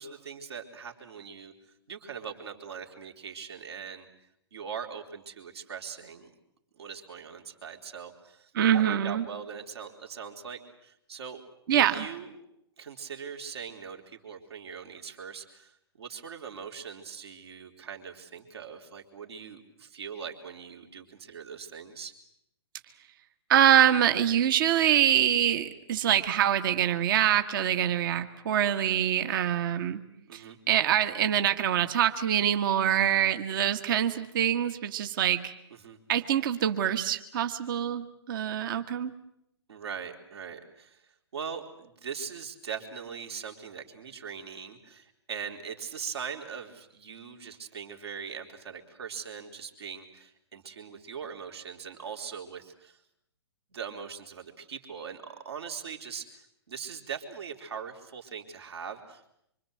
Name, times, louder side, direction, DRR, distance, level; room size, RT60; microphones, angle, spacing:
voice 1, 0.0-1.5 1.9-4.1 4.5-6.3 6.8-11.4 11.8-12.3 12.8-22.1 30.3-30.6 35.7-36.0 39.7-53.0 53.7-59.3, right 6 dB, 70° right, 3 dB, 3.7 m, -41 dB
voice 2, 8.5-9.2 11.7-12.1 23.5-30.0 30.3-35.5 36.1-39.1, right 10 dB, 50° right, 9 dB, 1.6 m, -25 dB
26.0 x 25.0 x 7.8 m, 0.77 s
hypercardioid pair, 130°, 14 cm